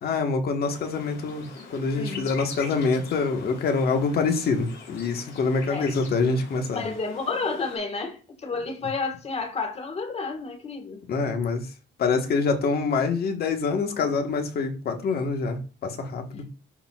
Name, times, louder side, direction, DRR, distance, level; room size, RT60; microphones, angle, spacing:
voice 1, 0.0-6.9 11.1-11.7 12.0-16.4, left 4 dB, 50° left, 1.4 m, -25 dB
sound 1, 0.6-7.8, left 5 dB, 65° left, 4.3 m, -43 dB
voice 2, 2.0-2.3 5.7-5.9 6.7-11.0 16.3-16.6, left 4 dB, 30° left, 1.6 m, -31 dB
12.0 x 4.5 x 2.4 m
cardioid pair, 145°, 20 cm